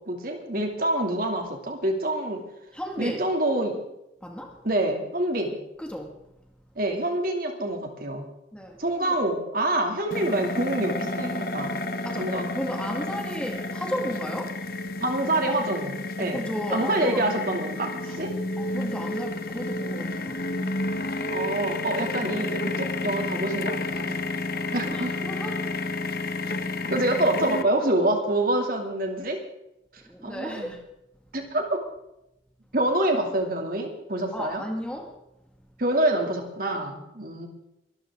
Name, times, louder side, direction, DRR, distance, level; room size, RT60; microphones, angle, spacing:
voice 1, 0.1-2.4 3.0-3.8 4.6-5.6 6.8-8.3 8.8-11.8 12.2-12.5 15.0-16.4 16.7-18.4 21.3-24.2 24.7-25.2 26.9-29.4 30.2-30.7 31.3-31.9 32.7-34.6 35.8-37.5, right 1 dB, 50° right, 3 dB, 2.7 m, -26 dB
voice 2, 2.7-3.2 4.2-4.5 5.8-6.1 8.5-9.2 12.0-14.6 16.2-17.2 18.1-18.2 18.6-20.4 24.5-25.7 30.0-30.8 34.3-35.1, equal, 5° left, 2 dB, 1.9 m, -34 dB
sound 1, 10.1-27.6, left 2 dB, 55° left, 1.1 m, -31 dB
23.0 x 13.5 x 3.7 m, 0.87 s
head